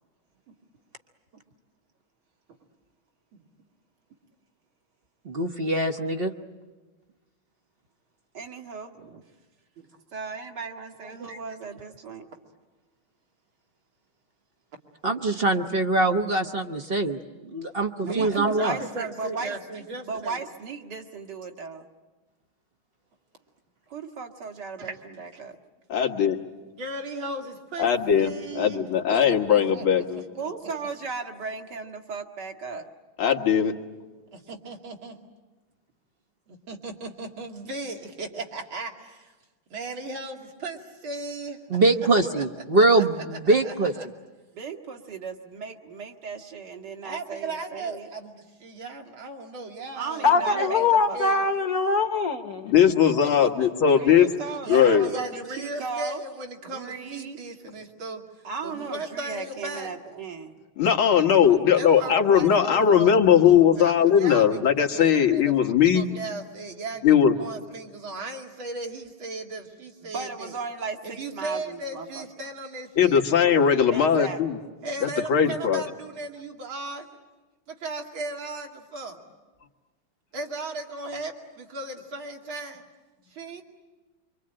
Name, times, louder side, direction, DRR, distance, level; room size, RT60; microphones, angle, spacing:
voice 1, 5.2-6.3 11.3-11.4 15.0-17.2 17.4-18.8 41.7-43.9, right 2 dB, 40° right, 6 dB, 0.9 m, -23 dB
voice 2, 8.3-9.2 10.1-12.3 18.1-19.5 20.0-21.9 23.9-25.6 30.4-32.9 44.5-48.1 49.9-51.2 53.9-56.2 56.6-57.4 58.4-60.5 70.1-72.2 73.9-74.8, right 4 dB, 55° right, 4 dB, 2.2 m, -36 dB
voice 3, 18.0-20.4 24.8-25.0 25.3-25.4 26.7-27.9 28.2-30.2 34.3-35.2 36.5-39.3 39.7-41.8 42.9-44.1 47.0-50.9 51.1-51.4 53.0-53.7 54.6-60.0 61.7-70.6 71.0-73.2 74.8-77.2 77.7-79.2 80.3-82.8 83.3-83.6, right 3 dB, 75° right, 2 dB, 3.2 m, -37 dB
voice 4, 25.9-26.4 27.8-30.2 33.2-33.7 52.6-54.3 54.7-55.1 60.8-66.1 67.0-67.4 73.0-74.6 75.0-75.8, left 8 dB, 90° left, 4 dB, 2.4 m, -19 dB
voice 5, 50.2-52.7, left 4 dB, 50° left, 7 dB, 1.4 m, -23 dB
25.5 x 25.5 x 8.8 m, 1.2 s
omnidirectional pair, 2.2 m